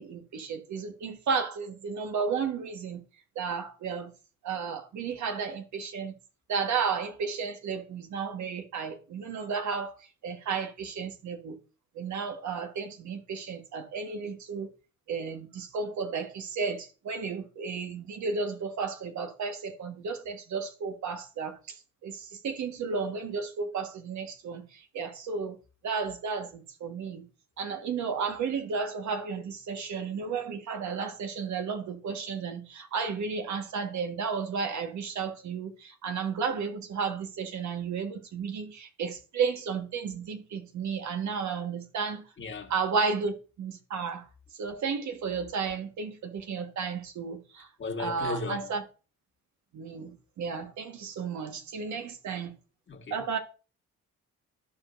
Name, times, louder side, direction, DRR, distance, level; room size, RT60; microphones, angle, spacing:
voice 1, 0.0-3.0 3.3-4.1 4.4-6.1 6.5-9.9 10.2-11.6 11.9-14.7 15.1-21.7 22.0-25.5 25.8-27.2 27.6-42.2 42.7-44.2 44.6-47.7 48.0-48.8 49.7-52.5 53.1-53.4, right 5 dB, 70° right, 1.4 m, -33 dB
voice 2, 42.4-42.7 47.8-48.7 52.9-53.2, left 3 dB, 40° left, 1.6 m, -36 dB
13.5 x 5.0 x 2.6 m
cardioid pair, 90°, 30 cm